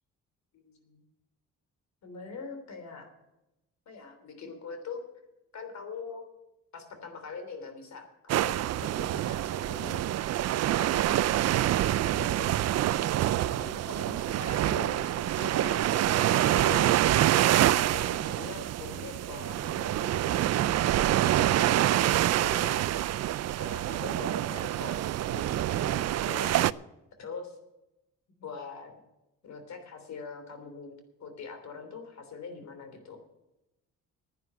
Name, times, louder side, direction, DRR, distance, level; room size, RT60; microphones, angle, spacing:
voice 1, 0.5-1.0 2.0-3.1 3.8-5.0 5.5-6.2 6.7-10.0 10.5-12.6 13.4-16.8 17.6-20.5 20.8-23.0 23.6-26.7 27.2-27.6 28.4-28.9 29.4-30.9 31.2-33.2, left 4 dB, 65° left, 6 dB, 3.3 m, -43 dB
sound 1, 8.3-26.7, right 13 dB, 60° right, 0.5 m, -26 dB
11.0 x 9.4 x 7.7 m, 0.95 s
cardioid pair, 90°, 30 cm